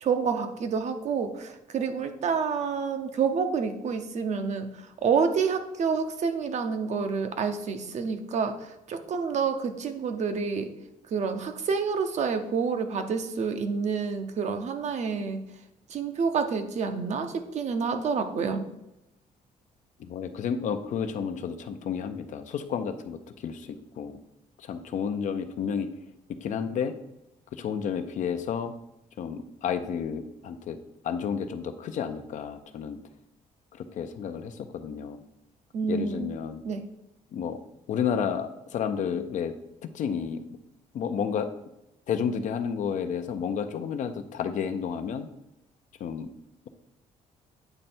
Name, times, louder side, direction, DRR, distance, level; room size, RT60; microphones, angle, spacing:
voice 1, 0.0-10.7 11.1-15.4 15.9-18.7 35.7-36.3 36.6-36.9, right 5 dB, 55° right, 7 dB, 0.7 m, -28 dB
voice 2, 20.0-24.1 24.6-25.9 26.4-26.9 27.5-28.7 29.2-30.8 31.0-33.0 33.7-35.2 35.9-36.6 37.3-37.6 37.9-39.5 39.9-40.4 40.9-41.5 42.1-45.3 46.0-46.3, left 7 dB, 60° left, 8 dB, 0.6 m, -31 dB
8.9 x 3.3 x 4.4 m, 0.90 s
cardioid pair, 130°, 14 cm